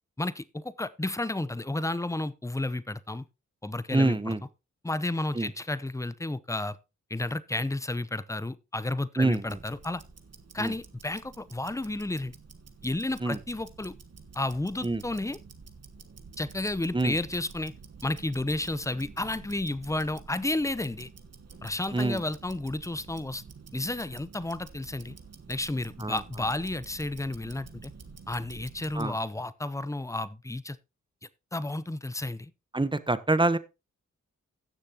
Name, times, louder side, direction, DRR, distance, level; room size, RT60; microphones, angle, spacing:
voice 1, 0.2-3.2 3.6-4.3 4.8-6.8 7.1-10.0 10.5-12.3 12.8-13.9 14.3-15.4 16.4-17.7 18.0-21.1 21.6-23.4 23.7-25.1 25.5-27.9 28.3-30.8 31.5-32.5, left 2 dB, 10° left, 0.7 m, -32 dB
voice 2, 3.9-4.4 5.3-5.5 9.2-9.6 10.6-10.7 13.2-13.4 14.8-15.0 16.9-17.2 21.9-22.2 26.0-26.2 28.9-29.2 32.7-33.6, right 2 dB, 15° right, 1.0 m, -26 dB
Tick-tock, 9.3-29.2, right 5 dB, 55° right, 1.4 m, -49 dB
16.5 x 6.6 x 2.9 m
cardioid pair, 45°, 31 cm